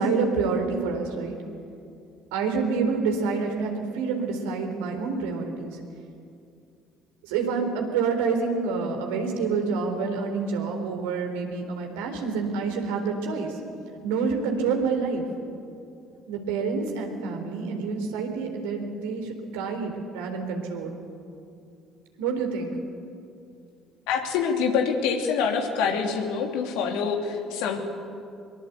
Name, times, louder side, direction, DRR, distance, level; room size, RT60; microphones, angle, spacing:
voice 1, 0.0-1.4 2.3-5.8 7.2-13.5 14.0-15.2 16.3-21.0 22.2-22.7, right 4 dB, 70° right, 3 dB, 3.8 m, -27 dB
voice 2, 24.1-27.8, left 6 dB, 70° left, 3 dB, 3.0 m, -25 dB
23.5 x 22.5 x 8.3 m, 2.5 s
figure-of-eight pair, 50°, 0 cm